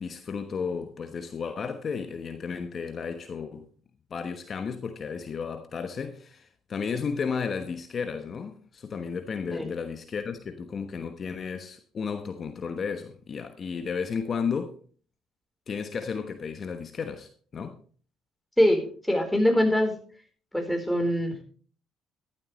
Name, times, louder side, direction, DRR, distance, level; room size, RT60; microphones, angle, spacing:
voice 1, 0.0-3.7 4.1-14.8 15.7-17.8, left 6 dB, 45° left, 1.1 m, -33 dB
voice 2, 18.6-19.9 20.5-21.4, left 1 dB, 5° left, 4.3 m, -23 dB
12.5 x 12.0 x 3.2 m
supercardioid pair, 65°, 0 cm